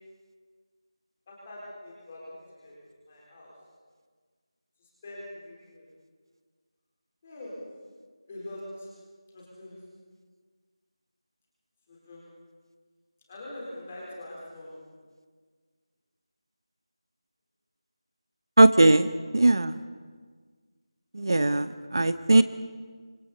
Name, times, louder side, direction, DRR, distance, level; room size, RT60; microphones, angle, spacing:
voice 1, 1.3-2.7 3.0-3.5 4.8-5.9 7.2-7.6 8.2-8.9 9.3-9.8 11.9-12.2 13.3-14.9 19.1-19.3, left 1 dB, 15° left, -5 dB, 4.1 m, -43 dB
voice 2, 18.6-19.1 19.3-19.7 21.1-22.4, right 2 dB, 50° right, 13 dB, 0.8 m, -19 dB
27.5 x 26.5 x 4.3 m, 1.5 s
figure-of-eight pair, 175°, 3 cm